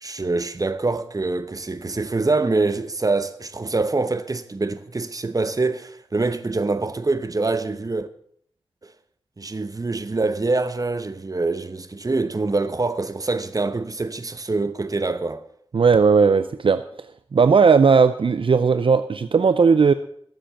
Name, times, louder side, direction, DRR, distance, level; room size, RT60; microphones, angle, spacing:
voice 1, 0.0-8.1 8.8-8.9 9.4-15.4, right 3 dB, 40° right, 0.9 m, -25 dB
voice 2, 15.7-16.8 17.3-19.9, right 5 dB, 65° right, 0.5 m, -16 dB
13.0 x 7.8 x 7.0 m
wide cardioid pair, 70°, 9 cm